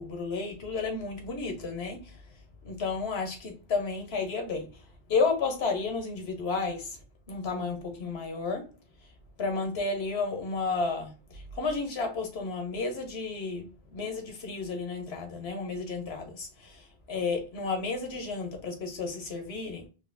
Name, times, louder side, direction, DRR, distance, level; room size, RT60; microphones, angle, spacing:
voice 1, 0.0-2.1 2.6-4.7 5.1-6.9 7.3-8.7 9.4-16.8 17.1-19.9, left 4 dB, 80° left, 1.2 m, -32 dB
3.9 x 3.1 x 2.6 m
omnidirectional pair, 1.0 m